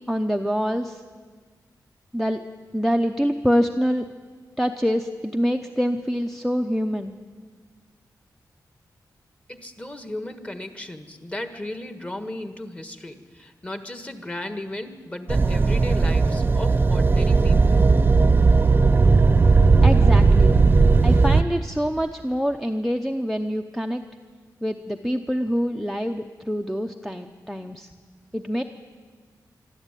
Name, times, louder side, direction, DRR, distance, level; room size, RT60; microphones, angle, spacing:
voice 1, 0.1-1.0 2.1-2.4 2.7-4.1 4.6-7.2 19.8-20.7 21.0-24.0 24.6-27.9 28.3-28.6, equal, ahead, 4 dB, 0.7 m, -25 dB
voice 2, 9.5-17.8, left 1 dB, 15° left, 9 dB, 1.6 m, -35 dB
sound 1, 15.3-21.4, right 4 dB, 30° right, 0.8 m, -17 dB
23.0 x 13.5 x 9.1 m, 1.5 s
wide cardioid pair, 130°, 7 cm